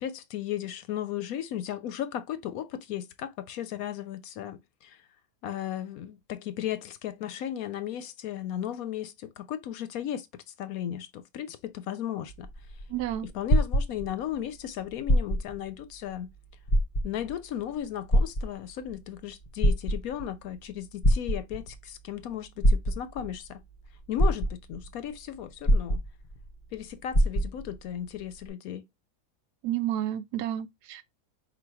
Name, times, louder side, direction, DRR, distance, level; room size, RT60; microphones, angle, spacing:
voice 1, 0.0-5.0 5.4-12.5 13.2-16.3 17.0-23.6 24.1-26.0 26.7-28.8, left 11 dB, 70° left, 1.0 m, -35 dB
sound 1, 12.3-14.4 15.0-15.6 16.1-16.2 16.6-17.4 18.1-18.9 19.4-20.3 21.0-21.8 22.6-23.3 23.8-23.9 24.2-24.9 25.6-26.5 26.7-26.8 27.1-27.8 28.5-28.6, equal, 45° left, 0.5 m, -24 dB
voice 2, 12.9-13.3 29.6-31.0, right 12 dB, 85° right, 1.1 m, -30 dB
4.0 x 2.5 x 4.7 m
omnidirectional pair, 1.7 m